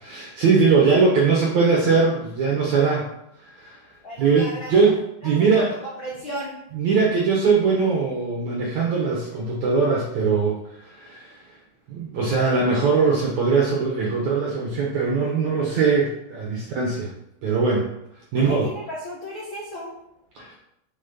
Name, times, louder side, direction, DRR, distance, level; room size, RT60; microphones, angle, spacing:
voice 1, 0.0-3.0 3.4-3.8 4.2-4.9 5.2-5.7 6.7-10.6 10.8-11.3 11.9-17.1 17.4-17.9 18.3-18.7 20.3-20.5, right 4 dB, 70° right, -2 dB, 1.7 m, -21 dB
voice 2, 4.0-4.9 5.2-6.6 18.3-19.9, equal, 75° left, -5 dB, 1.1 m, -35 dB
7.3 x 4.4 x 5.3 m, 0.81 s
omnidirectional pair, 4.8 m